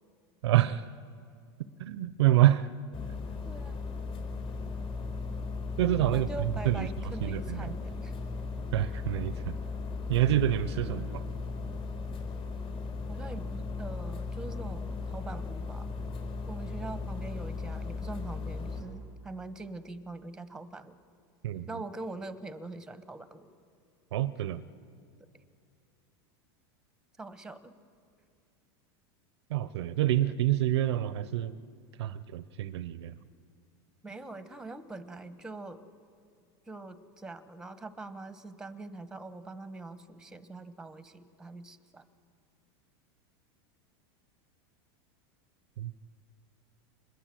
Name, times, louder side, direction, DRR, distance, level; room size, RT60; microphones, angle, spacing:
voice 1, 0.4-0.8 1.8-2.7 5.8-6.3 6.7-6.9 7.2-7.7 8.7-9.6 10.1-11.2 21.4-21.7 24.1-24.6 29.5-31.5 32.0-33.1 45.8-45.9, right 13 dB, 85° right, 15 dB, 0.7 m, -27 dB
sound 1, 2.9-18.8, left 4 dB, 35° left, 5.0 m, -37 dB
voice 2, 3.4-3.9 6.1-8.1 13.1-15.9 16.5-21.0 21.7-23.5 25.3-25.4 27.2-27.8 34.0-35.8 36.7-42.0, right 2 dB, 5° right, 12 dB, 1.2 m, -43 dB
26.0 x 21.0 x 7.7 m, 2.3 s
supercardioid pair, 125°, 14 cm